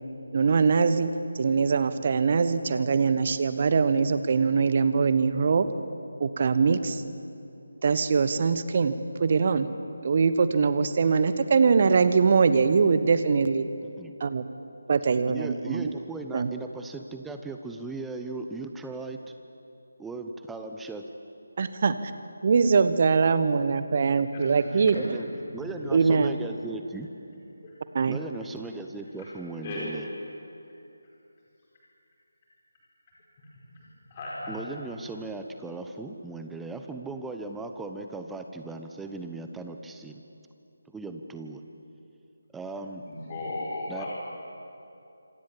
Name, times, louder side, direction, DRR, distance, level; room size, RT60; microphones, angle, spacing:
voice 1, 0.3-5.7 6.2-7.0 7.8-8.9 9.2-9.7 10.0-13.7 14.2-14.4 14.9-15.8 16.3-16.5 21.6-22.1 22.4-25.2 25.9-26.3 27.9-28.2, right 5 dB, 35° right, 12 dB, 1.2 m, -22 dB
voice 2, 15.3-19.2 20.0-21.0 24.7-27.1 28.1-30.1 34.5-40.2 40.9-41.6 42.5-43.0 43.9-44.1, right 3 dB, 5° right, 5 dB, 1.0 m, -37 dB
voice 3, 24.3-26.3 27.6-27.7 29.2-29.3 29.6-30.0 34.1-34.5 43.1-44.1, left 2 dB, 25° left, -5 dB, 4.8 m, -37 dB
26.5 x 25.5 x 7.5 m, 2.8 s
figure-of-eight pair, 155°, 0 cm